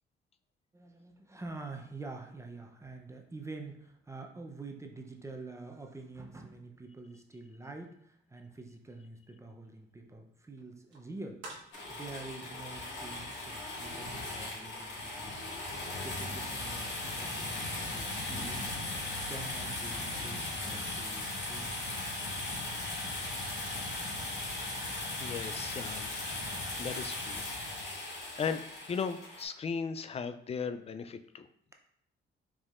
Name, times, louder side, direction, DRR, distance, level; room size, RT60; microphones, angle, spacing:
voice 1, 0.7-18.8 19.3-22.2, right 3 dB, 15° right, 3 dB, 0.6 m, -47 dB
sound 1, 10.6-13.3 13.8-13.9, right 2 dB, 70° right, 1.2 m, -51 dB
sound 2, 11.7-29.4, left 2 dB, 65° left, 1.8 m, -38 dB
voice 2, 25.2-26.1 26.8-27.4 27.9-31.5, left 6 dB, 30° left, 10 dB, 0.3 m, -37 dB
5.1 x 3.6 x 2.4 m, 0.69 s
cardioid pair, 90°, 20 cm